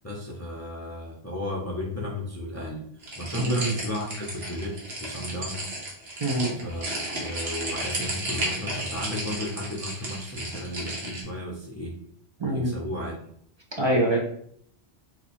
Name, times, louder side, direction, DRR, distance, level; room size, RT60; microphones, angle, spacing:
voice 1, 0.0-2.8 3.2-5.8 6.6-12.0 12.5-13.3, left 1 dB, 20° left, -3 dB, 0.5 m, -34 dB
sound 1, 3.0-11.2, right 1 dB, 70° right, 1.3 m, -33 dB
voice 2, 3.4-3.7 6.2-6.6 12.4-12.8 13.8-14.2, right 1 dB, 45° right, 0 dB, 0.3 m, -24 dB
2.9 x 2.3 x 4.1 m, 0.65 s
omnidirectional pair, 1.1 m